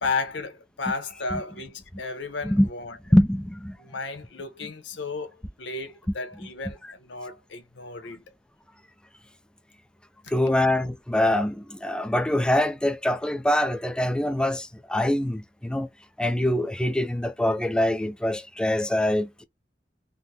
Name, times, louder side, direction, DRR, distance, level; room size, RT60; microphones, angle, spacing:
voice 1, 0.0-3.0 3.8-8.2, left 4 dB, 75° left, 0.8 m, -33 dB
voice 2, 3.1-3.8 10.3-15.9 16.2-19.4, left 1 dB, 5° left, 0.4 m, -24 dB
3.5 x 2.1 x 2.7 m
head